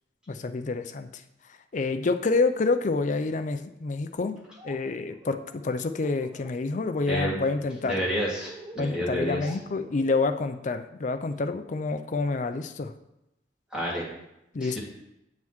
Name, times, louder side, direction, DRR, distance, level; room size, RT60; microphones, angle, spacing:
voice 1, 0.3-1.2 1.7-8.1 8.8-12.9 14.5-14.8, left 3 dB, 40° left, 9 dB, 0.4 m, -28 dB
Laughter, 4.3-4.8 5.1-6.5 6.8-7.2 7.5-10.4, right 1 dB, 20° right, 1.0 m, -47 dB
voice 2, 7.1-7.4 7.8-9.4 13.7-14.1 14.6-14.8, equal, 5° right, -6 dB, 2.2 m, -29 dB
8.2 x 7.5 x 3.1 m, 0.86 s
head